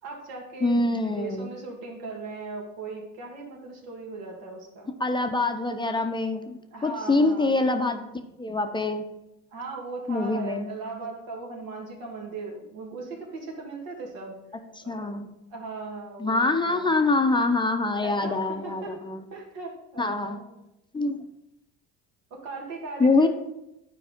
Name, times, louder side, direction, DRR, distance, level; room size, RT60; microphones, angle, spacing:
voice 1, 0.0-4.9 6.7-7.7 9.5-14.4 14.8-15.1 15.5-16.9 18.0-19.0 19.3-20.5 22.3-23.3, right 3 dB, 85° right, -1 dB, 2.0 m, -38 dB
voice 2, 0.6-1.5 5.0-8.0 8.4-9.0 10.1-10.7 14.8-15.3 16.2-19.2 20.0-20.4 20.9-21.2 23.0-23.3, left 3 dB, 15° left, 6 dB, 0.5 m, -25 dB
9.5 x 4.7 x 3.6 m, 0.90 s
cardioid pair, 110°, 33 cm